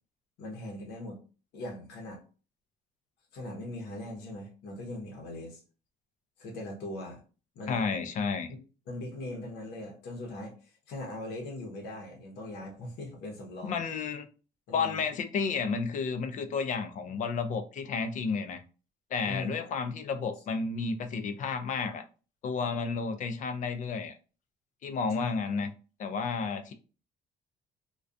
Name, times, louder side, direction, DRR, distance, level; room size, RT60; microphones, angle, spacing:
voice 1, 0.4-1.2 1.5-2.2 3.3-5.6 6.4-7.2 7.6-7.9 8.9-13.8 14.7-15.0 19.3-19.5 25.1-25.4, left 1 dB, 80° left, 1 dB, 0.8 m, -40 dB
voice 2, 7.7-8.5 13.6-14.3 14.7-18.6 19.1-22.0 22.4-24.1 24.8-25.7 26.0-26.7, left 5 dB, 50° left, 9 dB, 0.4 m, -31 dB
2.3 x 2.2 x 2.5 m, 0.35 s
cardioid pair, 110°, 17 cm